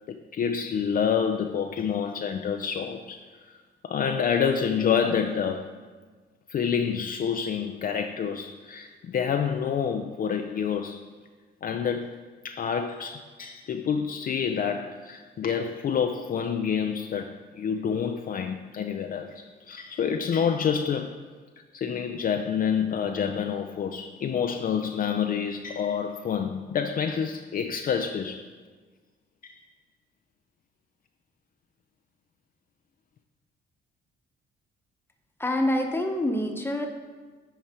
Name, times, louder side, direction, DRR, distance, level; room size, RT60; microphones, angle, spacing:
voice 1, 0.1-3.2 3.5-3.6 3.8-5.8 6.5-11.0 11.6-12.2 12.4-21.1 21.7-28.4 29.4-29.6, left 7 dB, 45° left, 6 dB, 0.4 m, -28 dB
voice 2, 35.4-36.9, left 1 dB, 10° left, 3 dB, 1.0 m, -26 dB
8.9 x 4.8 x 4.3 m, 1.4 s
cardioid pair, 90°, 20 cm